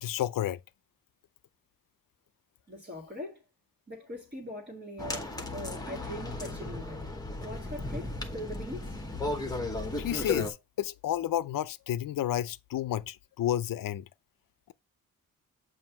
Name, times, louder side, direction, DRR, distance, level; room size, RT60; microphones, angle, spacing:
voice 1, 0.0-0.6 10.0-14.0, left 12 dB, 65° left, 0.5 m, -31 dB
voice 2, 2.7-3.4 3.9-7.0 7.4-9.0, left 1 dB, 30° right, 1.7 m, -41 dB
sound 1, 5.0-10.5, left 2 dB, 10° left, 1.0 m, -35 dB
7.6 x 2.6 x 5.7 m
wide cardioid pair, 120°, 36 cm